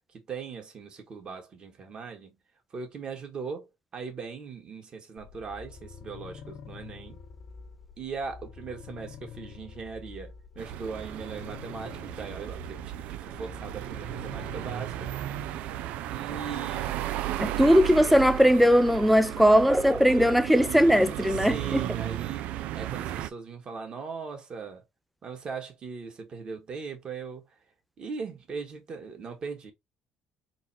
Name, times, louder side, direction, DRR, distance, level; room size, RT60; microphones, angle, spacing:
voice 1, 0.3-2.4 2.7-7.2 8.0-15.2 16.1-17.1 21.3-24.8 25.2-27.4 28.0-29.7, right 5 dB, 40° right, 1.7 m, -39 dB
sound 1, 5.2-15.8, left 6 dB, 60° left, 1.0 m, -46 dB
sound 2, 10.6-23.3, right 13 dB, 75° right, 0.4 m, -35 dB
voice 2, 17.4-21.8, equal, ahead, 0.4 m, -20 dB
4.0 x 2.4 x 4.3 m
cardioid pair, 95°, 2 cm